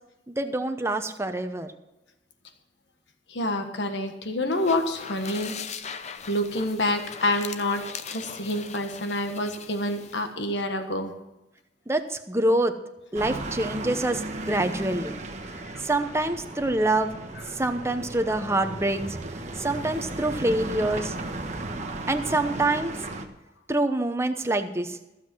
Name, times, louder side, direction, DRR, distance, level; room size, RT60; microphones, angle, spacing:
voice 1, 0.3-1.7 11.9-12.7 13.1-15.2 15.8-17.2 17.5-19.2 19.6-21.1 22.1-22.9 23.7-25.0, right 2 dB, 15° right, 7 dB, 0.9 m, -26 dB
voice 2, 3.3-5.5 6.3-11.1 14.5-14.6 15.5-15.9, left 1 dB, 80° left, 6 dB, 1.4 m, -28 dB
sound 1, 4.5-10.3, left 6 dB, 40° left, 0.7 m, -40 dB
sound 2, 13.1-23.3, right 2 dB, 40° right, 1.3 m, -35 dB
15.0 x 7.6 x 6.1 m, 0.98 s
head